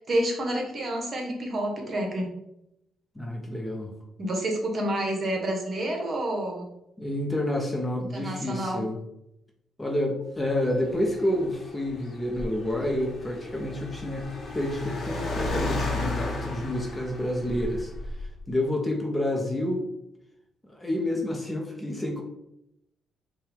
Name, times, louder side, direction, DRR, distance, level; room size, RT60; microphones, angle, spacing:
voice 1, 0.0-2.3 4.2-6.7 8.1-8.8, right 1 dB, 45° right, 1 dB, 1.0 m, -29 dB
voice 2, 3.1-3.9 7.0-9.0 9.8-17.9 18.2-19.9 20.6-22.2, left 1 dB, 15° left, 1 dB, 0.7 m, -29 dB
Car, 10.5-18.5, left 2 dB, 45° left, 0.8 m, -34 dB
4.4 x 2.3 x 3.4 m, 0.83 s
cardioid pair, 90°, 0 cm